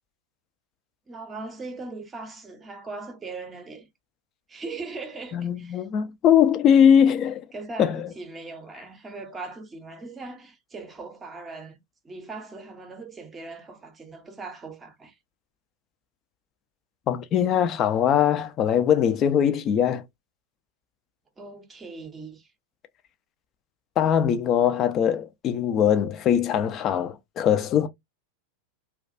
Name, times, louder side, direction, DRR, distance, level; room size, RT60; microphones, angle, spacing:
voice 1, 1.1-3.9 4.5-5.8 7.5-11.8 12.0-15.2 21.4-22.5, right 3 dB, 20° right, 0.7 m, -39 dB
voice 2, 5.3-7.4 7.8-8.1 17.1-20.0 24.0-27.9, left 9 dB, 30° left, 0.4 m, -21 dB
2.3 x 2.2 x 2.5 m
figure-of-eight pair, 90°, 0 cm